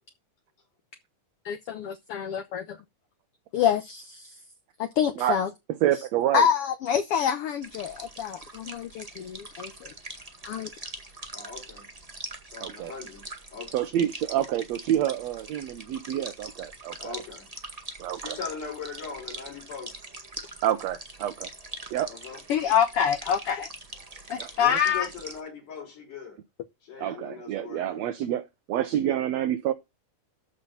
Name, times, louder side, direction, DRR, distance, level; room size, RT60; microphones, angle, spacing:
voice 1, 1.4-2.8 3.5-4.3 4.8-5.5 6.3-9.9 10.4-10.7 22.5-23.7 24.3-25.1, left 8 dB, 65° left, 1.5 m, -26 dB
voice 2, 5.8-6.5 12.6-12.9 13.7-17.1 18.0-18.4 20.6-21.5 21.9-22.1 24.4-24.5 27.0-29.7, right 11 dB, 70° right, 1.9 m, -28 dB
sound 1, 7.6-25.4, right 2 dB, 20° right, 1.1 m, -43 dB
voice 3, 11.3-11.9 12.4-13.8 17.0-17.5 18.2-20.0 22.1-22.4 24.6-26.4 26.8-28.1, left 5 dB, 85° left, 6.7 m, -40 dB
13.5 x 5.0 x 5.6 m
omnidirectional pair, 3.6 m